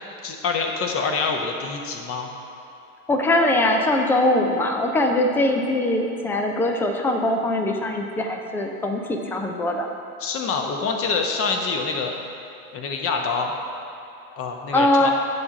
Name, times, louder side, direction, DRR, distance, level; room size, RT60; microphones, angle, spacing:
voice 1, 0.2-2.3 10.2-12.1 12.7-13.5 14.4-15.1, left 4 dB, 30° left, 2 dB, 1.0 m, -26 dB
voice 2, 3.1-9.9 14.7-15.1, left 1 dB, 5° left, 3 dB, 0.4 m, -21 dB
10.5 x 3.7 x 7.2 m, 2.8 s
figure-of-eight pair, 85°, 44 cm